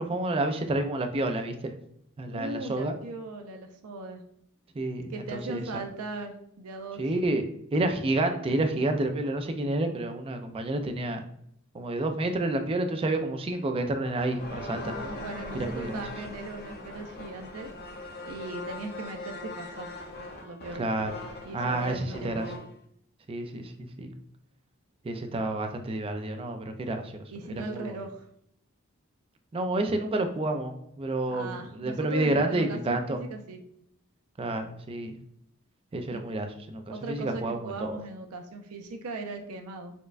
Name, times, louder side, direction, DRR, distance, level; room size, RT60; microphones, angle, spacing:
voice 1, 0.0-1.7 2.2-2.9 4.8-5.8 7.0-7.5 7.7-11.2 11.7-14.9 15.6-16.0 20.8-21.1 21.5-22.5 23.3-24.1 25.0-27.2 27.6-28.0 29.5-33.2 34.4-35.2 35.9-38.0, right 2 dB, 25° right, 6 dB, 0.3 m, -29 dB
voice 2, 2.3-4.2 5.1-7.0 15.2-17.7 18.3-19.9 20.4-20.9 21.4-22.5 27.3-28.3 31.3-33.6 36.1-36.2 36.9-39.9, right 3 dB, 85° right, 4 dB, 0.5 m, -38 dB
sound 1, 13.9-22.7, left 2 dB, 50° left, 0.6 m, -40 dB
4.3 x 2.2 x 2.4 m, 0.72 s
head